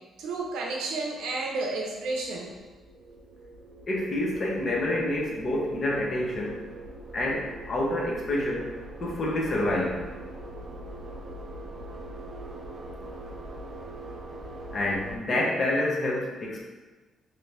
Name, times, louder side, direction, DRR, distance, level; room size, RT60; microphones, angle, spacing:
voice 1, 0.2-2.5, right 3 dB, 85° right, -1 dB, 0.6 m, -31 dB
sound 1, 1.5-15.2, right 1 dB, 45° right, 0.6 m, -42 dB
voice 2, 3.9-6.6 7.1-8.7 9.0-10.3 14.7-16.6, left 1 dB, 40° left, -2 dB, 0.8 m, -28 dB
2.9 x 2.5 x 3.3 m, 1.2 s
cardioid pair, 90°, 0 cm